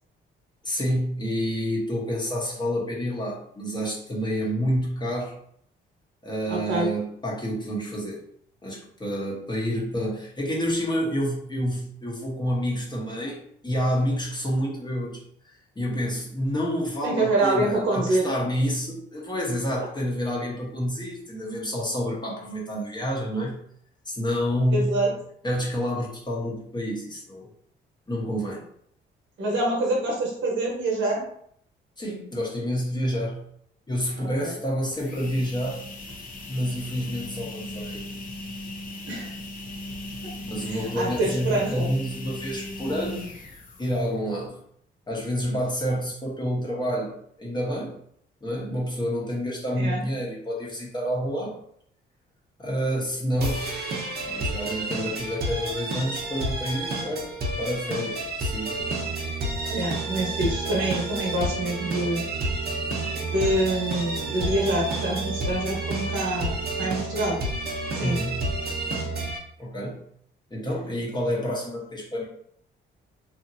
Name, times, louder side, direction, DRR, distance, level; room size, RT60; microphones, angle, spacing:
voice 1, 0.6-5.4 6.2-8.2 8.6-23.6 24.1-25.1 25.4-27.5 28.1-28.6 32.0-33.4 33.9-35.8 36.5-38.0 40.4-43.3 43.8-44.6 45.1-48.0 48.4-51.5 52.6-53.7 54.2-57.3 57.6-58.8 68.0-68.5 69.6-70.0 70.5-72.2, equal, 20° left, -3 dB, 1.0 m, -28 dB
voice 2, 6.5-6.9 17.0-18.2 24.7-25.1 29.4-31.2 34.2-34.5 39.1-39.3 40.7-41.9 49.7-50.0 59.7-62.2 63.3-67.4 68.0-68.2, right 1 dB, 75° right, -2 dB, 1.1 m, -26 dB
sound 1, 34.9-44.3, left 1 dB, 45° left, 0.6 m, -38 dB
sound 2, 53.4-69.4, right 1 dB, 55° right, 0.8 m, -31 dB
sound 3, 58.8-69.3, right 7 dB, 30° right, 0.4 m, -35 dB
2.8 x 2.6 x 2.6 m, 0.67 s
cardioid pair, 90°, 20 cm